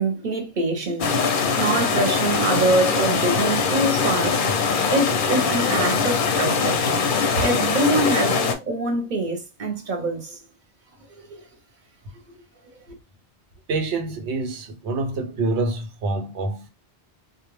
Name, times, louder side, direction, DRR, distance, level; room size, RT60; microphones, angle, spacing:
voice 1, 0.0-4.6 4.9-6.9 7.4-10.4 11.2-11.4 12.6-12.7, right 2 dB, 50° right, 0.8 m, -25 dB
sound 1, 1.0-8.5, left 5 dB, 60° left, 0.6 m, -22 dB
voice 2, 13.7-16.7, right 3 dB, 85° right, 0.9 m, -26 dB
2.3 x 2.0 x 3.0 m
omnidirectional pair, 1.1 m